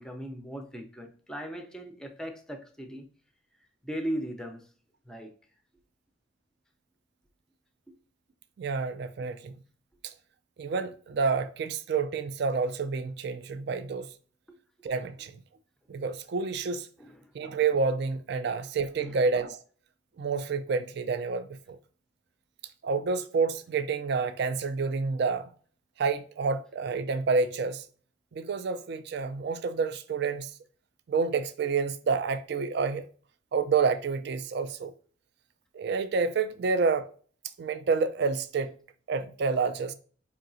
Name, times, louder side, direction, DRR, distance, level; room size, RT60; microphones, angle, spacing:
voice 1, 0.0-3.0 3.8-4.7 5.1-5.4 17.0-17.1 19.0-19.2, right 1 dB, 5° left, 0.5 m, -38 dB
voice 2, 8.6-9.5 10.0-10.1 10.6-14.1 14.8-15.3 15.9-16.9 17.3-19.6 20.2-21.8 22.8-25.5 26.0-27.8 28.3-30.5 31.1-33.0 33.5-34.9 35.7-37.1 37.6-38.7 39.1-39.9, right 4 dB, 55° right, 0.3 m, -29 dB
4.7 x 2.9 x 2.6 m
head